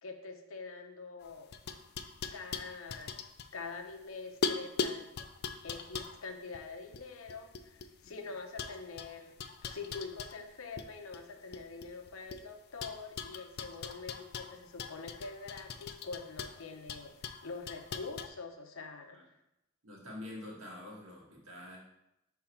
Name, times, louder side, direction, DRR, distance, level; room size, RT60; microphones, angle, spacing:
voice 1, 0.0-1.6 2.3-3.2 3.5-5.1 5.6-9.3 9.6-19.2, left 4 dB, 80° left, 5 dB, 0.7 m, -45 dB
sound 1, 1.2-4.0 4.4-8.1 8.6-10.9 11.1-12.4 12.8-18.3, left 5 dB, 50° left, 0.4 m, -40 dB
voice 2, 19.8-21.8, left 1 dB, 85° right, -3 dB, 1.8 m, -46 dB
5.8 x 3.7 x 4.4 m, 0.87 s
head